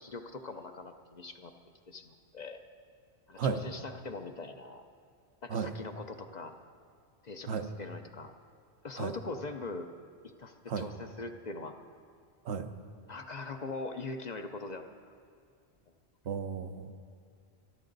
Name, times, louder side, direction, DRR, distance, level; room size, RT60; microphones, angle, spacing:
voice 1, 0.0-1.5 1.9-2.6 3.3-4.8 5.4-6.5 7.2-8.3 8.8-9.9 10.4-11.7 13.0-14.9, left 3 dB, 45° left, 5 dB, 0.7 m, -42 dB
voice 2, 16.2-16.9, right 6 dB, 75° right, 7 dB, 1.1 m, -33 dB
24.0 x 11.5 x 4.0 m, 2.3 s
omnidirectional pair, 1.1 m